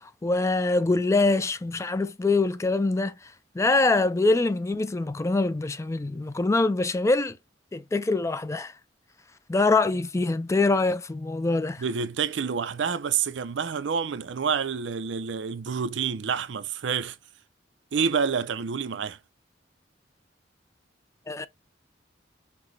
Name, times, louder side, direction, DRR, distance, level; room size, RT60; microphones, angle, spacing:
voice 1, 0.0-7.4 7.7-8.7 9.5-11.8 21.3-21.5, left 3 dB, 15° left, 0.3 m, -24 dB
voice 2, 11.8-17.2 17.9-19.2, right 6 dB, 75° right, 0.5 m, -28 dB
5.9 x 2.2 x 3.1 m
head